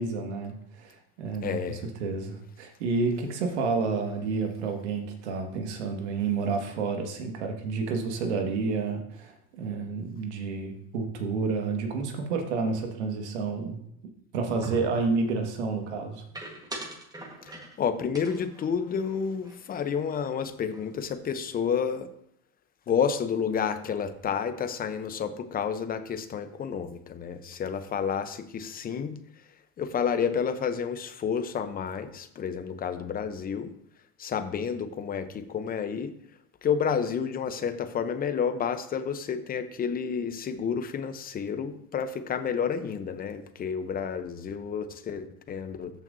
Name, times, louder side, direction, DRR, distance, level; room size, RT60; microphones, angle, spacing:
voice 1, 0.0-13.8 14.3-16.2, right 4 dB, 90° right, 3 dB, 1.8 m, -30 dB
voice 2, 1.4-1.8 17.4-22.1 22.9-29.2 29.8-33.7 34.2-36.1 36.6-45.9, left 7 dB, 25° left, 11 dB, 0.8 m, -30 dB
sound 1, 14.6-15.2 16.3-17.8 18.1-19.9 20.2-20.3 20.6-21.1, right 2 dB, 10° right, 1.4 m, -43 dB
14.0 x 5.8 x 2.7 m, 0.73 s
supercardioid pair, 115°, 33 cm